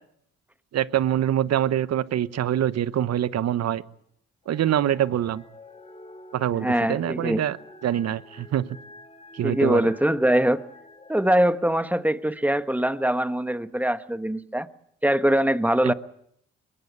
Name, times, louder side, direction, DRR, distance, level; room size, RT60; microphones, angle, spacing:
voice 1, 0.7-3.8 4.5-5.4 6.3-7.6 7.8-8.7 9.3-9.8 15.8-15.9, right 11 dB, 60° right, 1.0 m, -24 dB
sound 1, 4.4-11.8, left 2 dB, 20° left, 3.2 m, -47 dB
voice 2, 6.6-7.4 9.4-10.6 11.1-14.7 15.0-15.9, right 1 dB, 5° right, 1.2 m, -22 dB
22.5 x 19.5 x 8.3 m
supercardioid pair, 65°, 29 cm